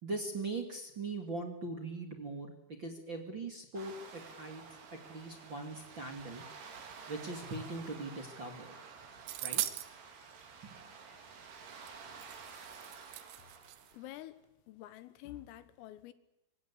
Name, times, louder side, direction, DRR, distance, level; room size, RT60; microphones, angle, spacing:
voice 1, 0.0-2.5 2.8-6.5 7.1-8.8 9.4-9.6 10.6-10.7, right 3 dB, 30° right, 2.3 m, -41 dB
sound 1, 3.8-14.2, right 5 dB, 55° right, 4.9 m, -51 dB
sound 2, 9.3-9.9 11.9-12.0 12.2-13.9, right 15 dB, 90° right, 4.0 m, -39 dB
voice 2, 13.9-14.4 14.7-16.1, left 14 dB, 85° left, 4.0 m, -48 dB
25.5 x 25.0 x 8.5 m
omnidirectional pair, 5.8 m